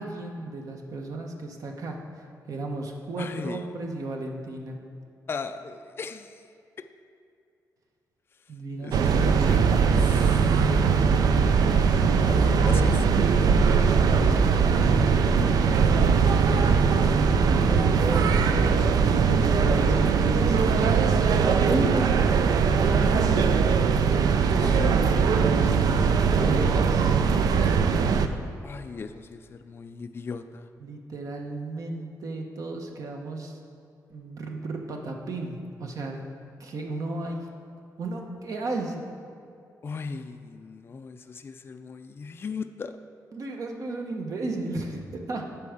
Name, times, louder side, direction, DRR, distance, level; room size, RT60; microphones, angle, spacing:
voice 1, 0.0-4.8 8.5-10.0 14.0-15.1 17.2-18.3 19.5-21.1 21.6-22.2 25.0-26.0 26.3-27.2 30.8-33.6 34.1-36.3 36.6-37.5 38.0-39.0 43.3-45.5, right 2 dB, 60° right, 2 dB, 1.0 m, -34 dB
voice 2, 3.2-3.7 5.3-6.4 6.8-6.9 8.8-9.7 10.0-10.5 12.2-13.2 24.6-25.0 28.6-30.7 39.8-43.0, left 5 dB, 35° left, 8 dB, 0.4 m, -37 dB
sound 1, 8.9-28.3, right 5 dB, 75° right, 0.5 m, -21 dB
8.5 x 4.6 x 6.5 m, 2.5 s
cardioid pair, 110°, 7 cm